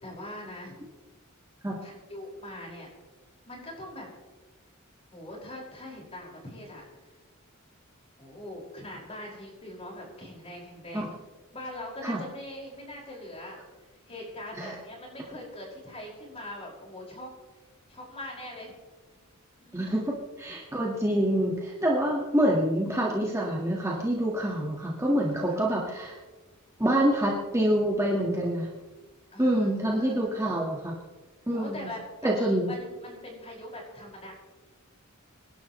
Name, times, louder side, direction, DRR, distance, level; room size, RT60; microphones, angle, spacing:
voice 1, 0.0-0.8 1.8-2.9 3.5-4.1 5.1-6.8 8.2-11.1 11.5-13.6 14.1-17.3 17.9-18.7 19.6-20.1 25.5-25.6 29.3-30.3 31.5-34.3, left 1 dB, 30° left, -3 dB, 5.6 m, -42 dB
voice 2, 19.7-26.2 26.8-28.7 29.4-30.9 31.5-31.9 32.2-32.7, right 1 dB, 15° right, -3 dB, 1.8 m, -26 dB
26.5 x 11.0 x 3.2 m, 1.2 s
head